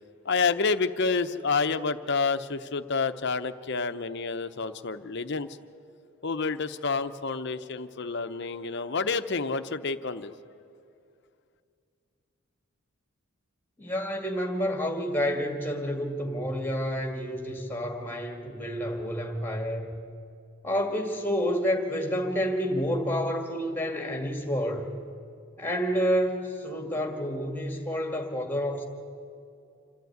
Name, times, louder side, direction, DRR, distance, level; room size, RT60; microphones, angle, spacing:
voice 1, 0.2-5.5 6.2-10.3, left 4 dB, 50° left, 10 dB, 0.7 m, -29 dB
voice 2, 13.8-20.0 20.6-24.9 25.6-28.8, equal, 10° left, 3 dB, 1.9 m, -29 dB
27.0 x 12.0 x 9.3 m, 2.5 s
head